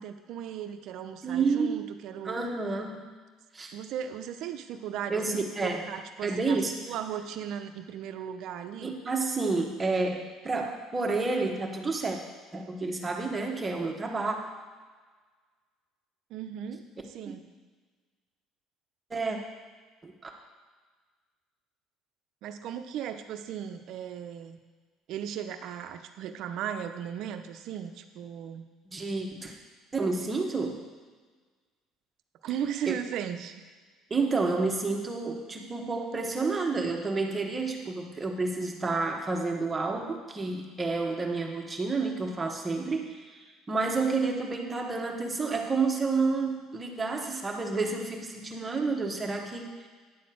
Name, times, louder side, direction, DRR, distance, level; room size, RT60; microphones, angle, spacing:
voice 1, 0.0-2.4 3.7-5.4 5.9-8.9 16.3-17.5 22.4-24.6 25.1-28.6 32.4-33.6, right 9 dB, 65° right, 8 dB, 0.7 m, -37 dB
voice 2, 1.2-1.9 2.2-3.1 3.5-3.7 5.1-5.9 6.2-6.7 8.8-12.2 12.5-14.4 17.3-17.4 19.1-19.4 20.0-20.3 28.9-29.5 29.9-30.8 32.9-33.0 34.1-49.9, right 3 dB, 20° right, 2 dB, 1.2 m, -30 dB
10.0 x 4.2 x 7.6 m, 1.4 s
cardioid pair, 130°, 0 cm